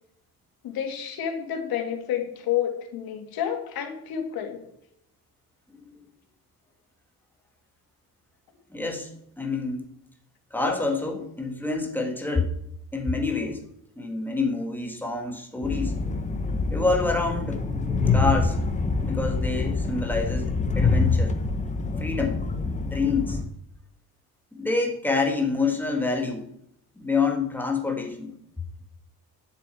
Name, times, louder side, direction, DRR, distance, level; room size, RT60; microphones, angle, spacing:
voice 1, 0.6-4.6, left 9 dB, 85° left, 3 dB, 2.6 m, -30 dB
voice 2, 8.7-9.1 9.4-9.9 10.5-12.5 12.9-13.6 14.0-16.0 16.7-17.6 18.1-18.6 19.0-21.3 22.0-22.5 22.8-23.4 24.6-26.5 27.0-28.3, left 3 dB, 5° left, 2 dB, 1.7 m, -27 dB
Train, 15.6-23.4, left 4 dB, 20° left, 0.9 m, -26 dB
9.7 x 7.7 x 8.4 m, 0.75 s
cardioid pair, 160°, 35 cm